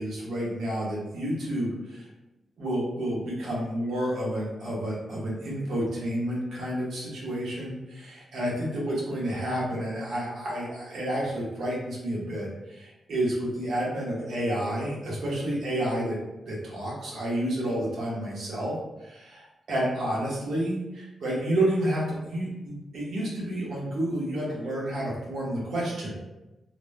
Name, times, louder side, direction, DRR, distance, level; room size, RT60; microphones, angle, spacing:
voice 1, 0.0-2.1 2.6-16.2 16.4-18.8 19.0-26.1, right 1 dB, 75° right, -5 dB, 1.2 m, -30 dB
3.1 x 2.1 x 3.4 m, 1.0 s
wide cardioid pair, 120°, 0 cm